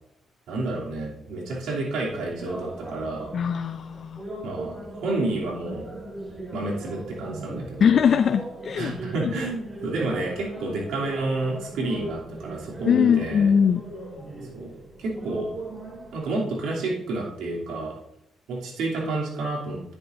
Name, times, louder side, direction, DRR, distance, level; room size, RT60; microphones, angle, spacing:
voice 1, 0.5-3.3 4.4-4.7 5.0-5.9 6.5-8.0 8.8-13.5 14.5-14.7 15.0-15.5 16.1-17.9 18.5-20.0, right 2 dB, 85° right, -3 dB, 3.0 m, -29 dB
sound 1, 2.0-16.2, right 2 dB, 35° right, 3.7 m, -39 dB
voice 2, 3.3-4.2 7.8-8.9 9.2-9.3 12.9-13.8, left 7 dB, 55° left, 9 dB, 0.5 m, -21 dB
10.5 x 10.5 x 2.6 m, 0.79 s
cardioid pair, 95°, 0 cm